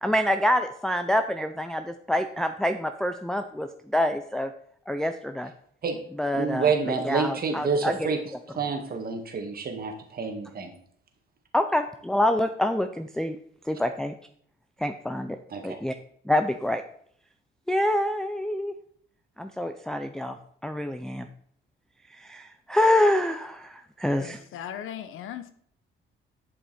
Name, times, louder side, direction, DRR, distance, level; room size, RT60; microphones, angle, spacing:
voice 1, 0.0-4.5 4.9-5.5 6.2-6.7 7.0-8.1 11.5-13.4 13.6-14.1 14.8-15.4 15.6-15.9 16.3-16.8 17.7-18.7 19.4-21.3 22.1-24.4, left 1 dB, 5° left, 0.5 m, -26 dB
voice 2, 6.3-8.2 8.5-10.7 15.5-15.8, right 5 dB, 45° right, 1.9 m, -28 dB
voice 3, 24.2-25.5, left 9 dB, 80° left, 0.9 m, -38 dB
11.0 x 5.6 x 4.3 m
cardioid pair, 110°, 21 cm